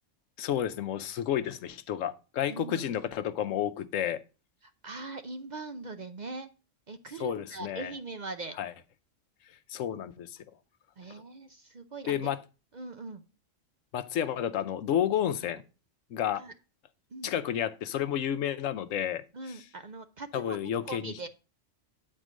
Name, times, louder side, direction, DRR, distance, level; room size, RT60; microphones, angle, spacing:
voice 1, 0.4-4.2 7.2-7.9 8.6-8.7 9.7-10.3 12.1-12.4 13.9-15.6 16.1-16.4 17.2-19.2 20.3-21.1, left 10 dB, 85° left, 1.1 m, -31 dB
voice 2, 2.5-2.9 4.6-6.5 6.9-8.6 11.0-12.2 12.7-13.2 16.3-16.5 17.1-17.3 19.3-21.3, right 3 dB, 45° right, 0.6 m, -41 dB
9.1 x 4.4 x 6.2 m
omnidirectional pair, 1.3 m